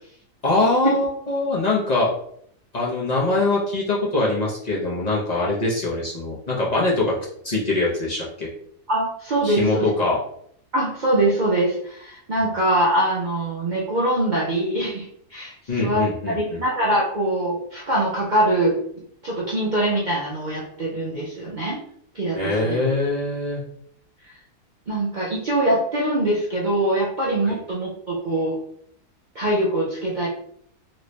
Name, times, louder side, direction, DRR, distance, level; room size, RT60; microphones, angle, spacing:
voice 1, 0.4-2.1 2.7-7.1 7.4-8.5 9.4-10.2 15.7-16.6 22.4-23.6 27.4-27.6, left 2 dB, 55° left, -5 dB, 0.4 m, -23 dB
voice 2, 8.9-9.9 10.7-18.8 19.2-21.8 22.1-22.8 24.9-28.6 29.3-30.3, right 1 dB, 70° right, -4 dB, 0.4 m, -23 dB
3.1 x 2.6 x 3.1 m, 0.67 s
omnidirectional pair, 1.7 m